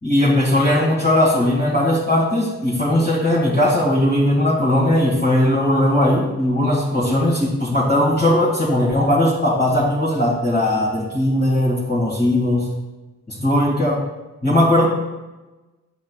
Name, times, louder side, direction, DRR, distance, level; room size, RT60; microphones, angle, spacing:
voice 1, 0.0-12.7 13.3-14.0 14.4-14.9, left 1 dB, 25° left, -7 dB, 2.0 m, -18 dB
7.9 x 5.1 x 2.4 m, 1.1 s
cardioid pair, 50°, 36 cm